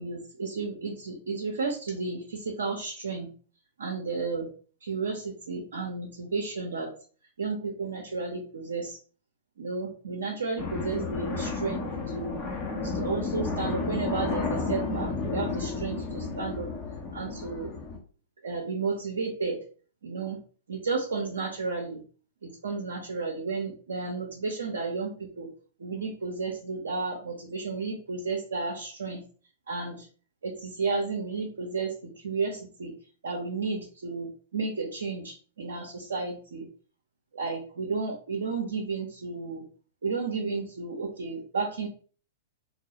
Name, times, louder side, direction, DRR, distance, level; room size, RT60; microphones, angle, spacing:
voice 1, 0.0-3.3 3.8-4.5 4.8-6.9 7.4-9.0 9.6-12.4 12.8-16.7 17.1-17.7 18.4-19.6 20.0-20.4 20.7-22.0 22.4-25.5 25.8-29.2 29.7-30.1 30.4-32.9 33.2-36.7 37.3-39.6 40.0-41.9, right 4 dB, 75° right, 1 dB, 0.5 m, -32 dB
sound 1, 10.6-18.0, left 4 dB, 30° left, 0.6 m, -32 dB
2.2 x 2.0 x 2.8 m, 0.40 s
hypercardioid pair, 110°, 0 cm